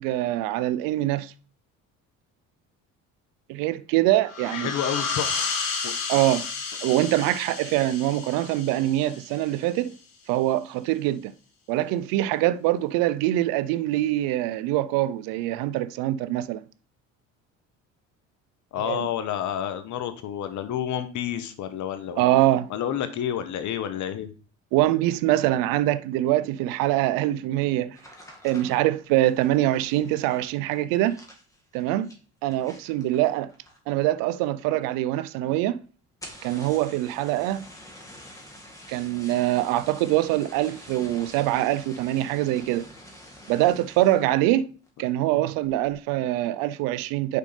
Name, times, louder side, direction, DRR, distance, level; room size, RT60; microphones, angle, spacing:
voice 1, 0.0-1.3 3.5-4.7 6.1-6.5 6.8-9.9 10.3-11.3 11.7-16.6 18.8-19.1 22.2-22.7 24.7-28.0 28.4-31.2 31.7-32.1 32.4-33.5 33.9-35.8 36.4-37.7 38.9-42.9 43.5-44.7 45.0-47.4, right 14 dB, 75° right, 0.6 m, -24 dB
sound 1, 4.2-9.6, left 5 dB, 75° left, 2.1 m, -32 dB
voice 2, 4.5-5.4 5.8-5.9 18.7-22.2 22.7-24.3, left 10 dB, 60° left, 1.1 m, -29 dB
sound 2, 27.9-34.0 34.3-34.8 35.1-35.2 35.5-35.6 36.1-44.4 44.8-45.2 45.6-46.0, left 1 dB, 10° left, 1.9 m, -47 dB
6.6 x 5.2 x 3.3 m
supercardioid pair, 80°, 34 cm